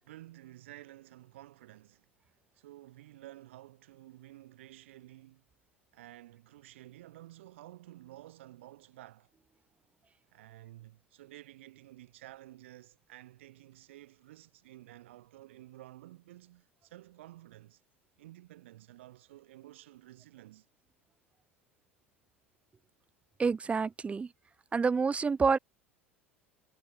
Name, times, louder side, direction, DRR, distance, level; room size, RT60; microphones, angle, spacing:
voice 1, 0.0-5.4 5.9-9.3 10.3-17.8 18.2-20.7, right 15 dB, 70° right, 6.1 m, -52 dB
voice 2, 23.4-24.3 24.7-25.6, right 5 dB, 20° right, 0.4 m, -28 dB
figure-of-eight pair, 75°, 7 cm